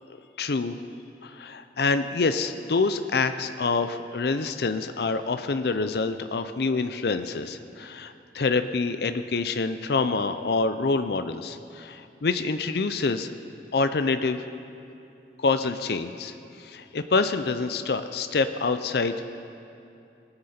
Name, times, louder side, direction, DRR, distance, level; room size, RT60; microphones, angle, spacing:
voice 1, 0.4-0.8 1.2-13.3 13.7-14.4 15.4-19.1, left 4 dB, 65° left, 9 dB, 0.5 m, -26 dB
20.0 x 9.6 x 4.3 m, 2.7 s
head